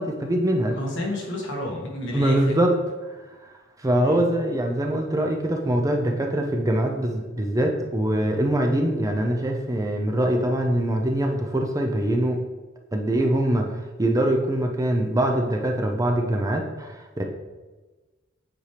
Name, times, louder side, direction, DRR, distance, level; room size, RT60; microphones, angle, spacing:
voice 1, 0.0-0.8 2.1-2.7 3.8-12.4 12.9-17.2, right 1 dB, 15° right, 2 dB, 0.6 m, -23 dB
voice 2, 0.7-2.5 4.0-4.2, left 1 dB, 65° left, -1 dB, 1.7 m, -30 dB
8.2 x 4.6 x 3.3 m, 1.2 s
head